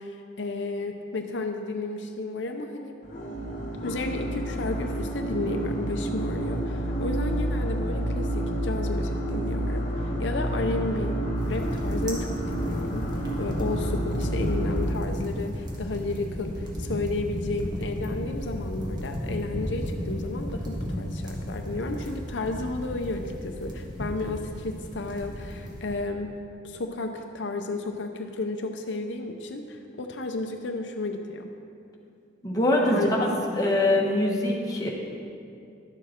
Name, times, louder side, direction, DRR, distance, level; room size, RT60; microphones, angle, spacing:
voice 1, 0.0-3.0 3.8-11.2 11.4-13.1 13.4-26.3 26.6-31.5 32.9-33.1 33.7-34.0, left 2 dB, 80° left, 5 dB, 0.6 m, -32 dB
sound 1, 3.0-14.9, right 1 dB, 45° left, 1.1 m, -29 dB
sound 2, 11.4-25.9, equal, 25° right, 1.4 m, -34 dB
voice 2, 32.4-34.9, left 1 dB, 20° left, -3 dB, 1.3 m, -23 dB
11.5 x 7.0 x 4.4 m, 2.5 s
head